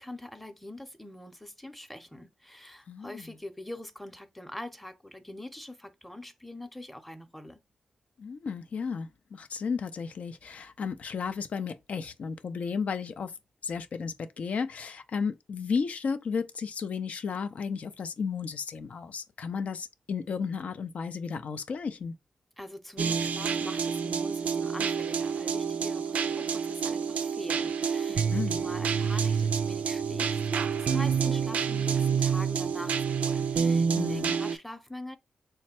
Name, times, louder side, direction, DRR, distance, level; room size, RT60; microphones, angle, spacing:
voice 1, 0.0-7.6 22.6-35.2, left 1 dB, 5° left, 0.7 m, -43 dB
voice 2, 2.9-3.3 8.2-13.3 13.6-22.1 28.1-28.7 33.9-34.4, left 5 dB, 65° left, 0.4 m, -33 dB
sound 1, 23.0-34.6, right 6 dB, 75° right, 0.3 m, -28 dB
3.3 x 2.1 x 4.2 m
supercardioid pair, 40°, 2 cm